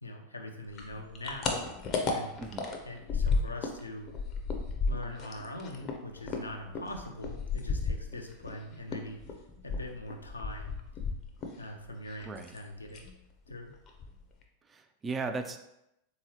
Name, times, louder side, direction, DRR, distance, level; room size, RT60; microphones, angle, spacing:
voice 1, 0.0-1.6 2.0-2.3 2.8-4.1 4.9-9.2 9.6-10.8 11.6-13.0 13.5-13.7, left 1 dB, 80° left, 3 dB, 0.5 m, -42 dB
sound 1, 0.7-3.8 4.1-8.6 8.9-11.6 11.9-12.6 12.9-13.2 13.5-13.6 13.9-14.4, left 4 dB, 35° left, 0.5 m, -33 dB
voice 2, 2.4-2.7 12.2-12.6 14.6-15.6, right 4 dB, 20° right, 7 dB, 0.3 m, -37 dB
3.7 x 2.9 x 2.8 m, 0.84 s
figure-of-eight pair, 90°, 0 cm